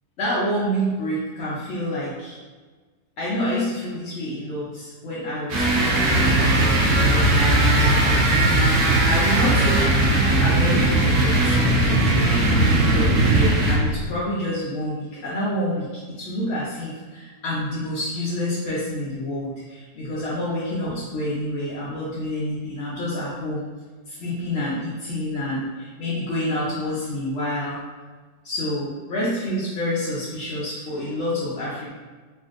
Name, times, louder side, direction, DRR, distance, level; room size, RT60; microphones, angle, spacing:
voice 1, 0.2-2.4 3.2-6.8 7.1-8.3 9.0-9.9 10.4-23.6 24.1-27.8 28.4-31.9, left 1 dB, 65° left, -7 dB, 0.7 m, -28 dB
sound 1, 5.5-14.0, right 2 dB, 70° right, 1.1 m, -21 dB
sound 2, 6.0-13.6, right 1 dB, 10° right, 0.5 m, -22 dB
3.3 x 2.5 x 2.4 m, 1.4 s
omnidirectional pair, 1.7 m